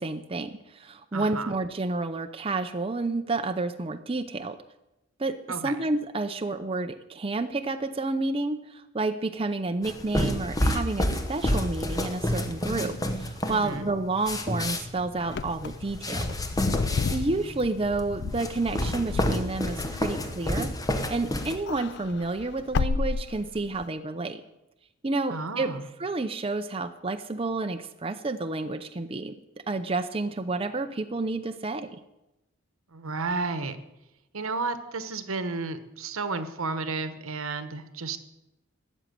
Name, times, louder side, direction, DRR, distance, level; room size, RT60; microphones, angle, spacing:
voice 1, 0.0-4.6 5.2-5.4 5.6-16.4 16.8-20.7 21.1-24.4 25.0-25.7 26.0-29.4 29.7-32.0, right 3 dB, 25° right, 7 dB, 0.5 m, -30 dB
voice 2, 1.1-1.5 5.5-5.8 13.5-13.9 25.3-25.9 32.9-33.8 34.3-38.2, right 3 dB, 80° right, 11 dB, 1.1 m, -32 dB
sound 1, 9.8-21.6, left 1 dB, 15° left, 1.0 m, -29 dB
Wind / Car, 15.2-21.1 21.4-23.8, left 4 dB, 50° left, 0.4 m, -32 dB
13.5 x 7.3 x 9.2 m, 0.94 s
head